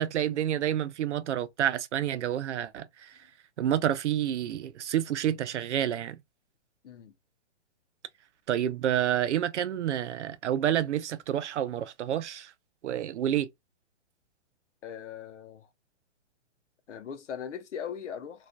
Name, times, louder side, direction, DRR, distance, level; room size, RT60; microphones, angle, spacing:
voice 1, 0.0-3.1 3.6-6.2 8.5-12.5 12.8-13.5, right 10 dB, 75° right, 0.5 m, -29 dB
voice 2, 14.8-15.7 16.9-18.5, left 8 dB, 85° left, 0.7 m, -39 dB
2.4 x 2.1 x 2.4 m
hypercardioid pair, 180°, 35 cm